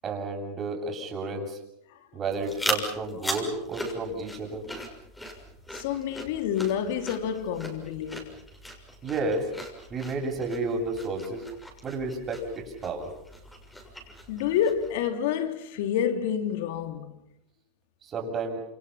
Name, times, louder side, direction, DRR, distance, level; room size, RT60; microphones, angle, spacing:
voice 1, 0.0-1.6 2.1-4.6 9.0-9.5 9.9-11.4 11.8-13.1 18.0-18.6, right 3 dB, 30° right, 7.8 m, -31 dB
sound 1, 2.2-15.0, equal, 5° left, 6.5 m, -39 dB
voice 2, 5.7-8.4 14.3-17.3, left 9 dB, 75° left, 3.2 m, -28 dB
28.5 x 28.0 x 5.8 m
supercardioid pair, 125°, 0 cm